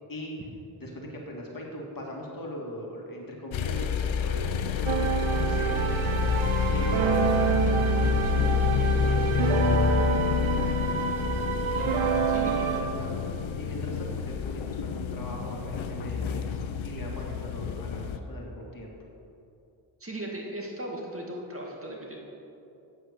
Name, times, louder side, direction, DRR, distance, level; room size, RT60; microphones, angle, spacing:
voice 1, 0.8-5.9 6.7-9.7 10.1-10.9 12.4-16.5 16.8-18.9, left 1 dB, 45° left, -1 dB, 2.0 m, -40 dB
sound 1, 3.5-18.2, left 5 dB, 80° left, 0.7 m, -28 dB
sound 2, 4.9-12.8, right 5 dB, 90° right, 0.8 m, -28 dB
voice 2, 11.7-12.7 20.0-22.2, right 1 dB, 30° right, -2 dB, 1.8 m, -38 dB
8.5 x 7.6 x 6.5 m, 2.8 s
cardioid pair, 85°, 46 cm